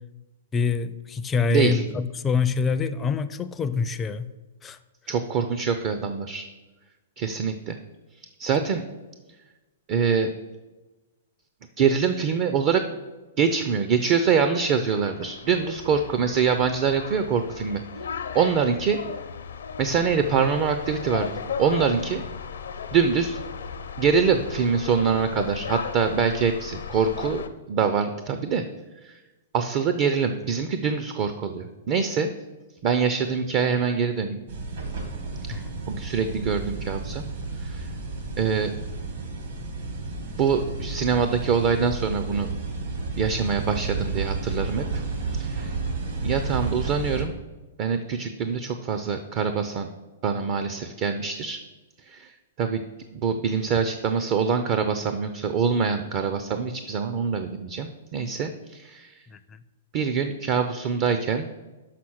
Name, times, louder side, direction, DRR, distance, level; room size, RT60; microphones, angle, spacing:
voice 1, 0.5-4.3 4.6-4.8 35.5-35.8 59.3-59.6, left 5 dB, 15° left, 11 dB, 0.4 m, -26 dB
voice 2, 1.5-1.8 5.1-6.5 7.2-7.8 8.4-8.8 9.9-10.3 11.8-12.8 13.4-17.8 18.3-19.0 19.8-21.3 21.6-22.2 22.9-23.4 24.0-28.6 29.0-29.2 29.5-32.3 32.8-34.4 35.4-35.6 35.9-37.2 37.6-37.9 38.4-38.7 40.4-42.5 43.2-44.8 45.3-45.7 46.2-47.3 47.8-49.9 50.2-51.6 52.1-52.8 53.2-59.2 59.9-61.5, right 6 dB, 40° right, 8 dB, 0.5 m, -24 dB
sound 1, 14.7-27.5, left 6 dB, 85° left, 0.6 m, -36 dB
sound 2, 34.5-47.2, right 3 dB, 65° right, 2.0 m, -32 dB
5.9 x 5.6 x 6.3 m, 1.2 s
hypercardioid pair, 135°, 0 cm